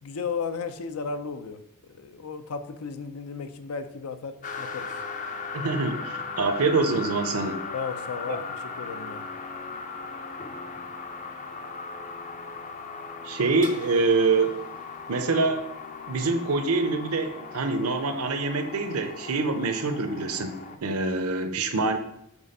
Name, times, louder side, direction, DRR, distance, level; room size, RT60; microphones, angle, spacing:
voice 1, 0.0-4.9 7.7-9.2, left 5 dB, 85° left, 10 dB, 0.5 m, -35 dB
sound 1, 4.4-20.8, left 4 dB, 35° left, 0.5 m, -38 dB
voice 2, 5.5-7.6 13.2-14.6 15.1-15.6 16.1-22.0, right 3 dB, 80° right, 8 dB, 0.7 m, -25 dB
6.1 x 3.5 x 5.3 m, 0.80 s
head